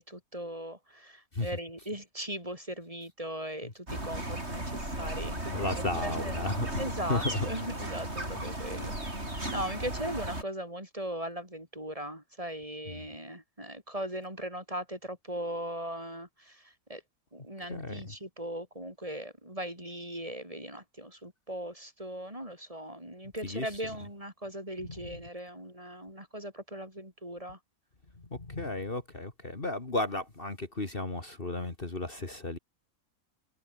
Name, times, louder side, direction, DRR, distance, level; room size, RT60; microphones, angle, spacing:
voice 1, 0.0-6.5 6.8-17.0 17.3-27.6, right 1 dB, 25° right, 6.8 m, -39 dB
sound 1, 3.9-10.4, right 1 dB, 50° right, 8.4 m, -35 dB
voice 2, 5.5-6.7 7.1-7.5 12.9-13.1 17.7-18.0 23.4-23.6 24.8-24.9 28.3-32.6, left 2 dB, 40° left, 2.9 m, -33 dB
omnidirectional pair, 1.5 m